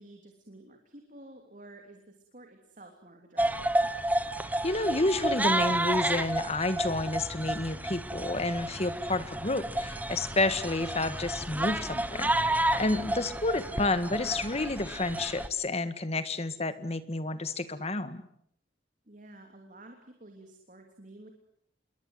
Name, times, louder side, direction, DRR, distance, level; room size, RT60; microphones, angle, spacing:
voice 1, 0.0-3.9 13.1-13.2 19.0-21.3, right 1 dB, 45° right, 4 dB, 3.1 m, -51 dB
sound 1, 3.4-15.5, right 1 dB, 10° right, 1.3 m, -31 dB
voice 2, 4.6-12.3 12.6-18.2, left 2 dB, 35° left, 12 dB, 1.8 m, -30 dB
sound 2, 10.3-15.3, equal, 75° left, 5.9 m, -59 dB
27.5 x 22.5 x 8.1 m, 0.69 s
head